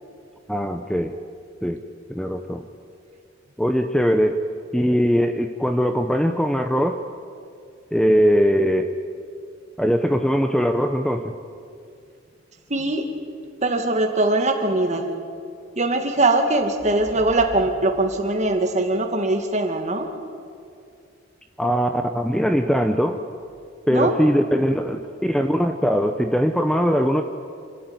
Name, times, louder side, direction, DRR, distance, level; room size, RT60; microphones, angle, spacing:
voice 1, 0.5-1.2 1.6-1.8 2.1-2.6 3.6-4.4 4.7-7.0 7.9-8.9 9.8-11.3 21.6-23.2 23.9-27.2, equal, 5° left, 6 dB, 0.7 m, -21 dB
voice 2, 12.7-13.1 13.6-15.1 15.8-20.1 23.9-24.1, right 2 dB, 35° right, 4 dB, 2.3 m, -21 dB
27.5 x 13.0 x 9.7 m, 2.3 s
head